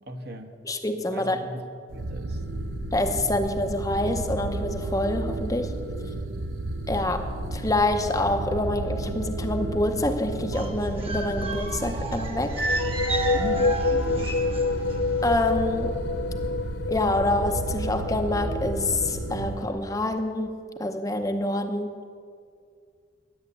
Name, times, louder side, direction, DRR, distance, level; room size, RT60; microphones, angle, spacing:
voice 1, 0.0-0.5 1.1-1.6 1.9-2.4 13.3-14.4, equal, 55° right, 2 dB, 1.4 m, -38 dB
voice 2, 0.6-1.4 2.9-5.8 6.9-12.7 15.2-16.0 16.9-22.0, left 1 dB, 20° left, 6 dB, 0.7 m, -26 dB
sound 1, 1.9-19.7, right 2 dB, 85° right, 0.9 m, -32 dB
sound 2, 10.5-15.0 15.2-15.5, right 2 dB, 30° right, 1.4 m, -32 dB
sound 3, 12.3-20.0, left 4 dB, 60° left, 0.4 m, -29 dB
13.5 x 9.7 x 8.3 m, 2.2 s
head